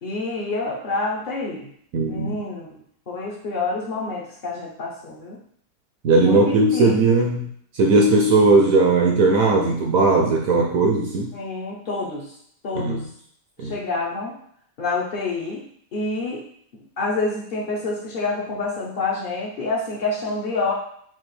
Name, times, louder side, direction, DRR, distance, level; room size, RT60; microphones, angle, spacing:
voice 1, 0.0-1.7 2.1-2.7 3.1-5.4 6.2-7.0 11.3-12.3 12.6-13.0 13.6-14.4 14.8-15.7 15.9-16.5 17.0-20.7, left 3 dB, 55° left, -5 dB, 0.5 m, -27 dB
voice 2, 1.9-2.4 6.0-7.5 7.7-11.3 12.7-13.1 13.6-13.7, right 3 dB, 70° right, 0 dB, 0.8 m, -18 dB
5.9 x 2.4 x 3.2 m, 0.63 s
omnidirectional pair, 2.0 m